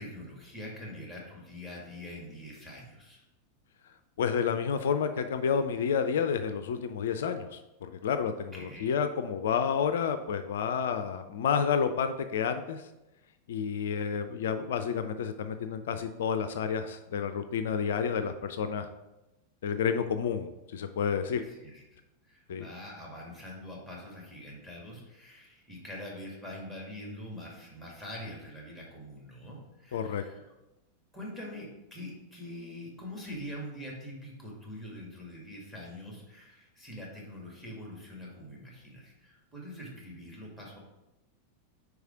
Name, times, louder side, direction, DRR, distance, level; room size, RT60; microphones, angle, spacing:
voice 1, 0.0-3.2 8.5-8.9 21.3-22.0 22.2-30.4 31.1-40.8, left 1 dB, 5° right, -3 dB, 2.2 m, -44 dB
voice 2, 4.2-12.8 13.5-18.9 19.6-21.4 22.5-22.7 29.9-30.2, left 7 dB, 60° left, 9 dB, 0.3 m, -30 dB
4.8 x 4.8 x 4.9 m, 0.97 s
figure-of-eight pair, 90°, 0 cm